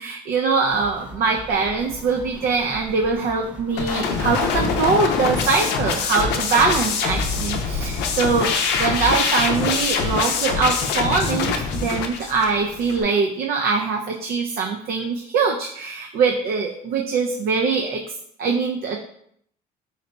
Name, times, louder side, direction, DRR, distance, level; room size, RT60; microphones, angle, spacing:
voice 1, 0.0-18.0 18.4-19.0, right 4 dB, 65° right, 2 dB, 0.4 m, -22 dB
sound 1, 0.7-5.1, equal, 10° right, 0.7 m, -40 dB
sound 2, 3.8-13.0, left 5 dB, 85° left, 0.5 m, -24 dB
3.9 x 2.2 x 4.0 m, 0.69 s
cardioid pair, 110°, 17 cm